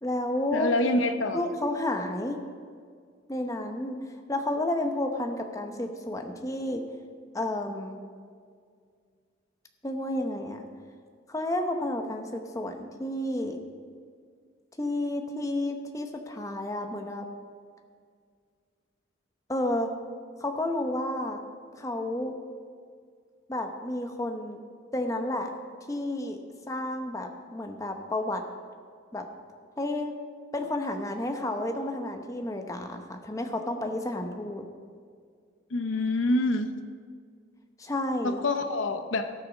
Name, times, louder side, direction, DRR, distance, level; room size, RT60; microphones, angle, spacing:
voice 1, 0.0-0.7 1.3-2.4 3.3-4.0 4.3-6.8 7.3-8.0 9.8-10.6 11.3-13.6 14.8-17.3 19.5-19.9 20.4-21.4 21.8-22.3 23.5-24.6 24.9-25.5 25.9-26.4 26.7-28.4 29.1-29.3 29.8-30.1 30.5-34.7 37.8-38.4, left 1 dB, 15° left, 4 dB, 0.8 m, -31 dB
voice 2, 0.5-1.4 35.7-36.7 38.2-39.3, left 2 dB, 85° left, 8 dB, 0.8 m, -26 dB
17.5 x 6.2 x 5.1 m, 2.1 s
head